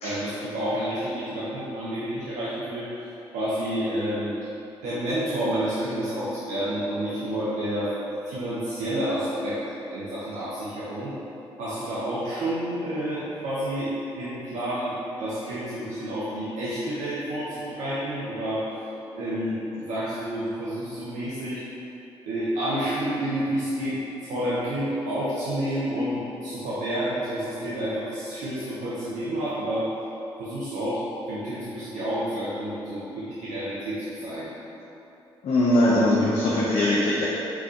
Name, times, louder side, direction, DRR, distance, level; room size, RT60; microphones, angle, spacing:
voice 1, 0.0-2.9 3.3-4.3 4.8-7.9 8.3-9.6 9.9-11.2 11.6-18.6 19.1-21.6 22.3-29.9 30.4-31.0 31.3-34.5, right 1 dB, 65° right, -10 dB, 0.8 m, -29 dB
voice 2, 35.4-37.2, left 1 dB, 50° left, -6 dB, 0.7 m, -21 dB
4.5 x 4.1 x 2.7 m, 3.0 s
figure-of-eight pair, 40°, 14 cm